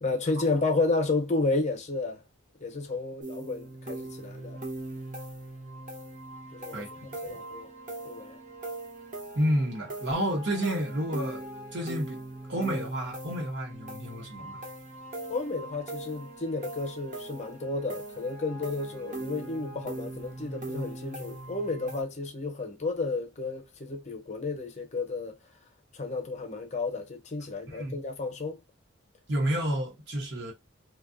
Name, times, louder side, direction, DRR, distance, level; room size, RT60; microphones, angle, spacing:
voice 1, 0.0-2.2 2.6-4.6 6.5-7.7 8.0-8.4 15.3-25.4 25.9-28.6, left 3 dB, 35° left, 0.7 m, -32 dB
sound 1, 3.2-22.0, right 2 dB, 40° right, 0.7 m, -41 dB
voice 2, 9.3-11.5 11.7-12.2 12.5-14.6 27.7-28.0 29.3-30.5, equal, 60° right, 1.0 m, -30 dB
2.6 x 2.3 x 2.5 m
head